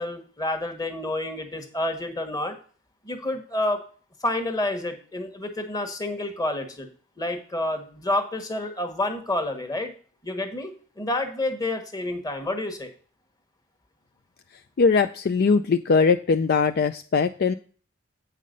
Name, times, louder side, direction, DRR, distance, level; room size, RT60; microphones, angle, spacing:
voice 1, 0.0-2.6 3.0-3.8 4.2-6.9 7.2-9.9 10.2-12.9, left 1 dB, 20° left, 6 dB, 1.3 m, -29 dB
voice 2, 14.8-17.5, left 5 dB, 50° left, 9 dB, 0.4 m, -21 dB
8.5 x 5.7 x 5.3 m, 0.41 s
head